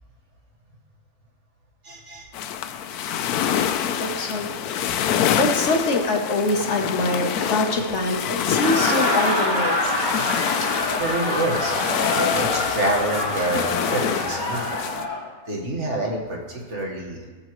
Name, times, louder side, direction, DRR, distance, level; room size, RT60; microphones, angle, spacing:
voice 1, 1.8-2.3 10.6-10.7 11.0-11.7 12.2-14.7 15.5-17.3, right 1 dB, 50° right, -1 dB, 1.8 m, -27 dB
sound 1, 2.3-15.0, left 9 dB, 85° left, 1.1 m, -26 dB
voice 2, 3.8-4.8 5.4-10.2 10.5-10.6, left 2 dB, 55° left, 3 dB, 1.2 m, -25 dB
Laughter, 8.4-15.2, left 1 dB, 30° left, 1.8 m, -26 dB
19.0 x 6.5 x 3.1 m, 1.4 s
omnidirectional pair, 1.6 m